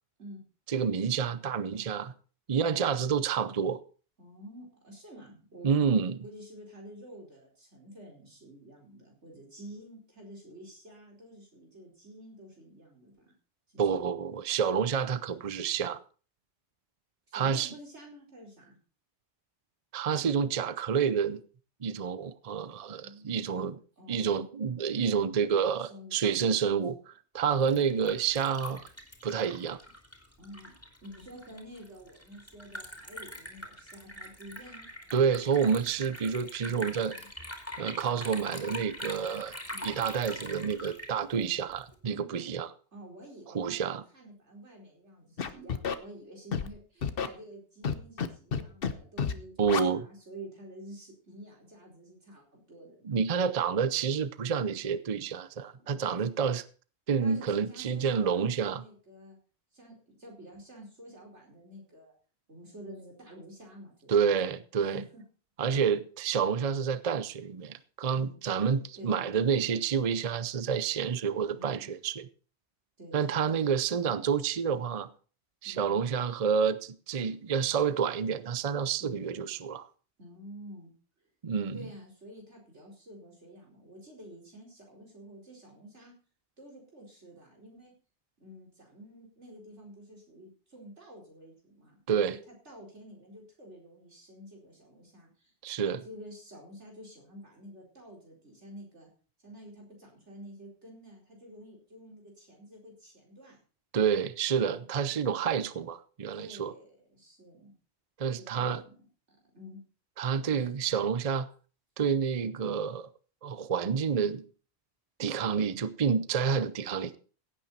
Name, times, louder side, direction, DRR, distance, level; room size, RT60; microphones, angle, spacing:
voice 1, 0.7-2.1 2.5-3.8 5.6-6.2 13.8-16.0 17.3-17.7 19.9-21.4 21.8-23.7 24.1-28.8 29.2-29.8 35.1-37.1 37.8-39.5 39.8-42.7 43.5-44.0 49.6-50.0 53.0-56.6 57.1-58.8 64.1-65.0 65.6-72.3 73.1-75.1 75.6-79.9 81.4-81.8 92.1-92.4 95.6-96.0 103.9-106.7 108.2-108.8 110.2-111.5 112.0-113.1 113.4-114.4 115.2-117.2, right 6 dB, 40° right, 0.7 m, -29 dB
voice 2, 4.2-13.3 13.7-14.1 17.3-18.8 22.8-24.5 25.8-26.1 26.4-26.7 27.6-28.0 30.4-30.7 31.0-34.9 36.6-37.3 39.7-40.0 42.0-42.4 42.9-53.1 55.8-56.1 57.2-59.4 59.7-62.1 62.5-64.4 64.9-65.2 68.1-68.4 68.9-69.5 70.0-70.2 71.5-71.9 73.0-73.7 75.6-76.1 79.0-79.2 80.2-80.9 81.7-86.1 86.6-87.9 88.4-92.0 92.3-95.5 95.8-99.1 99.4-103.6 104.7-105.1 106.3-107.7 108.3-108.9 109.3-109.8 110.5-110.7, equal, 90° right, 5.1 m, -49 dB
Liquid, 27.4-41.9, equal, 10° left, 3.0 m, -44 dB
Scratching (performance technique), 45.4-46.0 46.5-46.7 47.0-47.3 47.8-48.3 48.5-48.9 49.2-49.3 49.7-49.8, left 6 dB, 55° left, 1.1 m, -30 dB
16.5 x 9.1 x 4.2 m
omnidirectional pair, 1.1 m